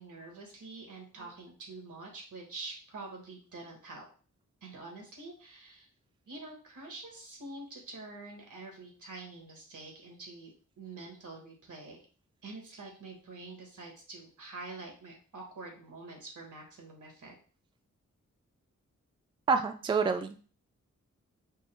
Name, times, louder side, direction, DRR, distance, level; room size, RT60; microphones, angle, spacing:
voice 1, 0.0-4.0 4.6-5.9 6.3-12.0 12.4-17.3, right 3 dB, 90° right, 0 dB, 1.4 m, -46 dB
voice 2, 19.5-20.4, right 5 dB, 15° right, 7 dB, 0.3 m, -28 dB
5.3 x 2.0 x 3.2 m, 0.39 s
wide cardioid pair, 75°, 30 cm